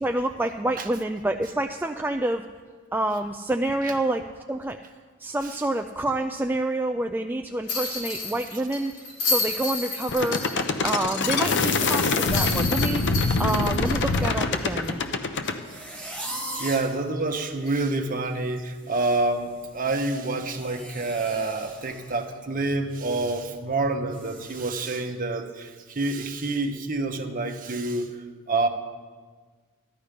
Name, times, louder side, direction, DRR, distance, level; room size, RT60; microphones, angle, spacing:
voice 1, 0.0-2.4 2.9-4.8 5.2-8.9 9.3-10.4 10.8-13.1 13.4-15.0, right 1 dB, 10° right, 4 dB, 0.3 m, -27 dB
sound 1, 7.7-10.9 11.2-11.3 12.3-15.0 15.4-15.5 17.7-17.9, left 3 dB, 75° left, 3.1 m, -31 dB
sound 2, 10.1-15.6, left 3 dB, 55° left, 0.8 m, -24 dB
sound 3, 15.6-17.0 17.6-17.7 18.0-18.3 18.6-22.3 22.6-22.8 23.2-23.3 24.1-24.6, right 1 dB, 5° left, 1.3 m, -39 dB
voice 2, 16.5-28.1 28.5-28.7, right 2 dB, 40° right, 4 dB, 1.1 m, -27 dB
14.0 x 11.5 x 5.2 m, 1.5 s
head